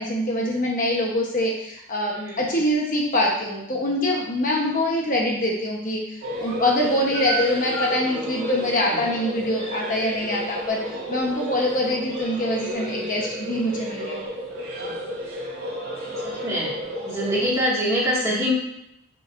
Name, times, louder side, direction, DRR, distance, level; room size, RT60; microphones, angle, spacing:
voice 1, 0.0-14.2, left 1 dB, 40° left, -2 dB, 1.0 m, -24 dB
voice 2, 2.1-2.6 8.6-9.0 14.8-15.1 16.2-16.7 17.0-18.5, equal, 15° right, -6 dB, 2.0 m, -26 dB
sound 1, 6.2-17.5, equal, 90° right, 2.6 m, -31 dB
9.5 x 6.2 x 2.6 m, 0.81 s
head